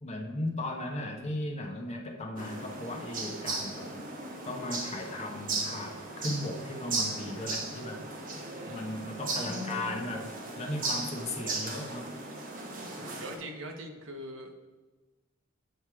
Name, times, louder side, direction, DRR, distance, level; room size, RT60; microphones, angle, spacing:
voice 1, 0.0-3.9 4.4-8.0 8.7-12.1, left 1 dB, 35° left, 2 dB, 0.9 m, -36 dB
sound 1, 2.4-13.4, right 3 dB, 45° right, 1.1 m, -37 dB
voice 2, 8.4-8.9 13.0-14.5, right 1 dB, 70° right, 3 dB, 1.0 m, -43 dB
9.0 x 3.2 x 4.7 m, 1.2 s
head